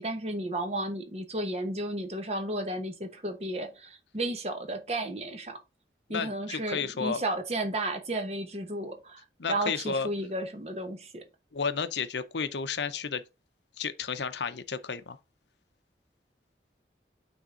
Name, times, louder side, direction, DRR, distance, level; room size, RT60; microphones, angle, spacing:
voice 1, 0.0-5.6 6.1-11.3, right 1 dB, 35° right, 1.0 m, -33 dB
voice 2, 6.1-7.2 9.4-10.1 11.5-13.2 13.8-15.2, left 5 dB, 80° left, 0.7 m, -32 dB
9.1 x 3.6 x 3.8 m
head